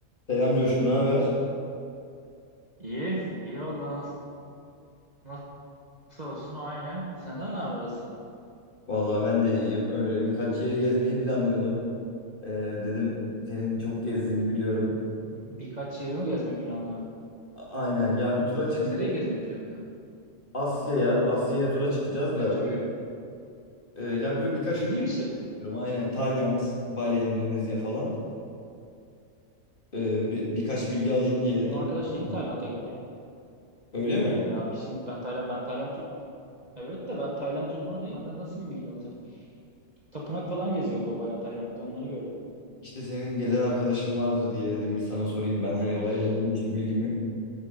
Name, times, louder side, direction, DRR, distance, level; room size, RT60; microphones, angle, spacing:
voice 1, 0.3-1.3 8.9-11.8 12.4-13.2 13.5-14.9 17.6-18.9 20.5-22.5 24.0-24.9 25.6-28.1 29.9-31.7 32.3-32.4 33.9-34.4 42.8-47.1, left 2 dB, 35° left, -6 dB, 2.3 m, -27 dB
voice 2, 2.8-4.1 5.2-5.4 6.1-8.1 15.3-17.0 18.7-19.8 22.3-22.8 24.7-25.3 31.6-33.0 34.4-36.0 36.7-39.5 40.1-42.4 46.0-46.3, right 1 dB, 30° right, -5 dB, 1.1 m, -33 dB
9.9 x 6.6 x 5.3 m, 2.5 s
omnidirectional pair, 1.6 m